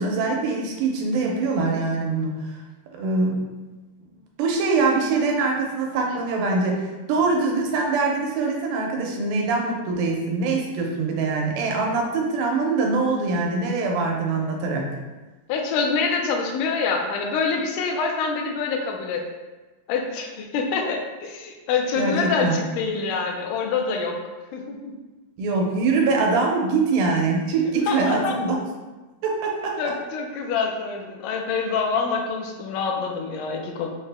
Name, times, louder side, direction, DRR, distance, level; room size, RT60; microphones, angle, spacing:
voice 1, 0.0-2.5 2.9-3.3 4.4-14.9 22.0-22.6 25.4-28.6 29.2-29.8, right 3 dB, 85° right, 0 dB, 2.5 m, -23 dB
voice 2, 15.5-19.2 19.9-24.2 24.5-24.9 27.9-28.4 29.8-33.9, left 5 dB, 80° left, 2 dB, 2.0 m, -26 dB
6.2 x 2.1 x 3.3 m, 1.2 s
omnidirectional pair, 4.0 m